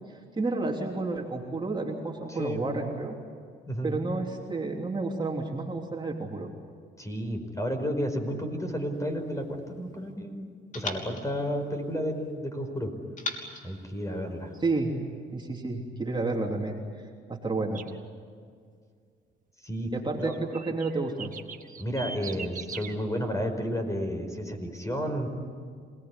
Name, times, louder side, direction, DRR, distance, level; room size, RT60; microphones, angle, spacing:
voice 1, 0.1-3.2 3.8-6.5 14.6-14.9 15.3-17.8 19.9-21.3, right 3 dB, 25° right, 0 dB, 3.3 m, -31 dB
voice 2, 2.3-2.7 3.7-3.9 7.0-12.9 13.6-14.5 19.6-19.9 20.2-20.3 21.8-25.3, equal, 15° left, 5 dB, 5.0 m, -32 dB
sound 1, 8.9-10.1 10.7-12.4 13.2-14.8, left 2 dB, 40° left, 3.5 m, -41 dB
sound 2, 17.7-18.0 20.2-22.9, right 5 dB, 40° right, 1.8 m, -40 dB
27.0 x 19.5 x 9.8 m, 2.1 s
cardioid pair, 90°, 20 cm